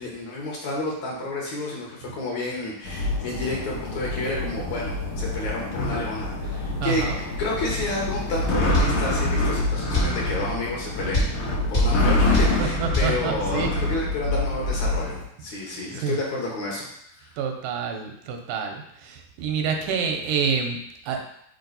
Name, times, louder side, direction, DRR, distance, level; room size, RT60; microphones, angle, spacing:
voice 1, 0.0-7.1 7.4-16.9 17.2-17.4, left 2 dB, 65° left, -3 dB, 2.1 m, -30 dB
sound 1, 2.8-15.2, left 2 dB, 85° left, 1.1 m, -26 dB
voice 2, 6.8-7.2 12.6-13.7 15.7-15.8 16.0-16.1 17.4-20.8 21.1-21.2, right 6 dB, 85° right, 3 dB, 2.2 m, -27 dB
sound 2, 8.7-9.0 9.9-10.2 11.1-11.4 11.7-12.0 12.3-12.6 12.9-13.2, equal, 40° left, 1.2 m, -21 dB
5.3 x 4.6 x 3.9 m, 0.74 s
omnidirectional pair, 3.9 m